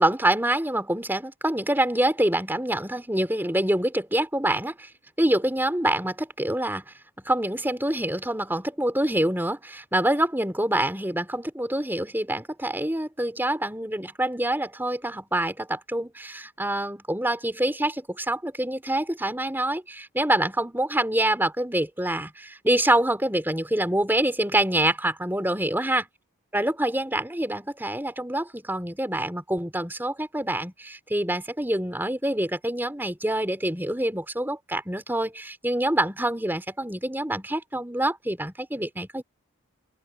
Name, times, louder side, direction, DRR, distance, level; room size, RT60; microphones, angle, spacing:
voice 1, 0.0-4.9 5.2-6.9 7.3-26.0 26.5-39.2, right 1 dB, 10° right, 3.6 m, -26 dB
open air
head